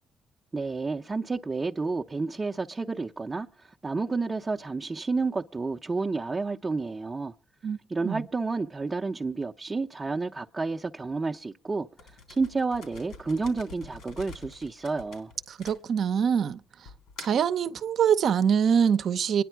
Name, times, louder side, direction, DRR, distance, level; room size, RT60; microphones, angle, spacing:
voice 1, 0.5-7.3 7.9-11.9 12.3-15.3, right 3 dB, 25° right, 0.7 m, -30 dB
sound 1, 12.0-16.3 16.9-17.5, left 4 dB, 85° left, 3.5 m, -46 dB
voice 2, 15.5-16.6 17.2-19.4, right 7 dB, 65° right, 0.7 m, -24 dB
24.5 x 10.0 x 4.6 m
cardioid pair, 90°, 0 cm